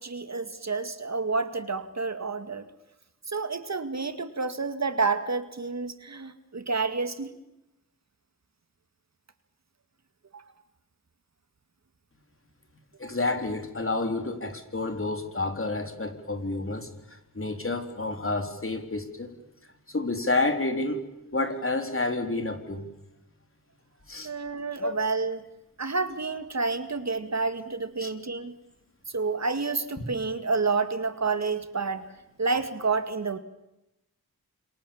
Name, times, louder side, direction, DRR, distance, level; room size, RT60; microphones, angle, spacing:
voice 1, 0.0-2.7 3.3-7.3 10.3-10.4 13.0-13.1 24.2-25.5 25.8-28.5 29.1-32.0 32.4-33.4, right 4 dB, 50° right, 9 dB, 2.1 m, -29 dB
voice 2, 13.0-19.4 19.9-21.1 21.3-22.9 24.1-24.3 24.8-24.9 28.0-28.1, left 2 dB, 35° left, 6 dB, 3.9 m, -29 dB
29.5 x 27.0 x 7.3 m, 0.92 s
wide cardioid pair, 75°, 35 cm